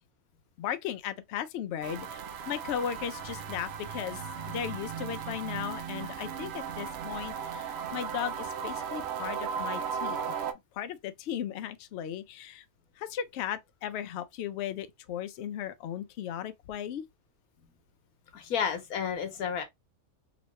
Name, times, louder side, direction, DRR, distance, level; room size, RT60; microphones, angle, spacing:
voice 1, 0.6-10.3 10.7-12.6 13.0-17.0, left 9 dB, 65° left, 0.7 m, -36 dB
sound 1, 1.8-10.5, right 7 dB, 65° right, 0.6 m, -36 dB
voice 2, 18.3-19.6, left 7 dB, 85° left, 1.3 m, -31 dB
3.0 x 2.9 x 3.1 m
omnidirectional pair, 1.5 m